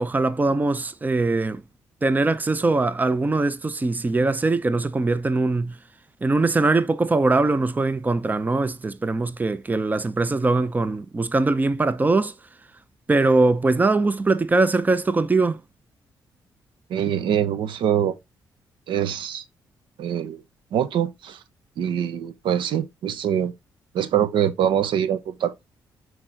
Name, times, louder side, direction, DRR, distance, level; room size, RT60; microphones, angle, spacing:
voice 1, 0.0-1.6 2.0-5.8 6.2-12.3 13.1-15.6, right 3 dB, 20° right, 0.6 m, -21 dB
voice 2, 16.9-18.2 18.9-19.4 20.0-20.4 20.7-21.4 21.8-23.5 23.9-25.5, right 9 dB, 80° right, 0.7 m, -24 dB
6.0 x 4.6 x 3.7 m
cardioid pair, 85°, 8 cm